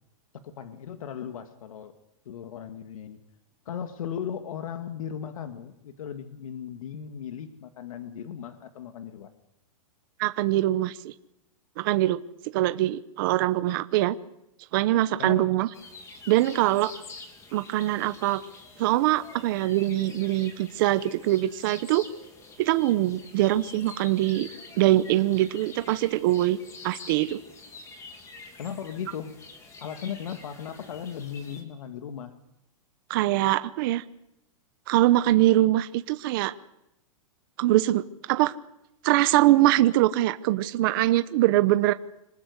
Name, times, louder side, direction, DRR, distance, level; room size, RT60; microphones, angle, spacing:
voice 1, 0.4-1.9 2.3-3.2 3.7-9.3 15.2-15.6 28.6-29.4 29.8-32.3, left 8 dB, 75° left, 8 dB, 2.1 m, -37 dB
voice 2, 10.2-11.1 11.8-12.2 12.5-14.2 14.7-15.7 16.3-16.9 17.5-18.4 18.8-22.0 22.6-24.5 24.8-26.6 26.8-27.4 33.1-34.0 34.9-36.5 37.6-38.5 39.0-41.9, right 15 dB, 40° right, 12 dB, 0.8 m, -23 dB
sound 1, 15.7-31.6, left 3 dB, 15° left, 2.8 m, -47 dB
26.0 x 19.5 x 8.2 m, 0.85 s
supercardioid pair, 165°, 18 cm